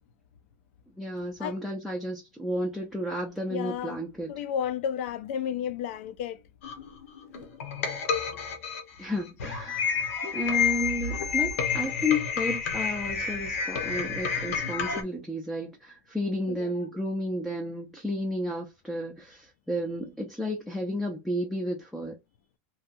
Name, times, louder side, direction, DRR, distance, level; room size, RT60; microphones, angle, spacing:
voice 1, 1.0-4.3 9.0-22.2, left 1 dB, ahead, 0.4 m, -32 dB
voice 2, 3.5-4.0 4.3-6.4 16.5-16.9, left 9 dB, 60° left, 0.4 m, -32 dB
sound 1, 6.6-15.0, left 6 dB, 90° left, 0.9 m, -29 dB
2.7 x 2.3 x 2.5 m
supercardioid pair, 160°, 7 cm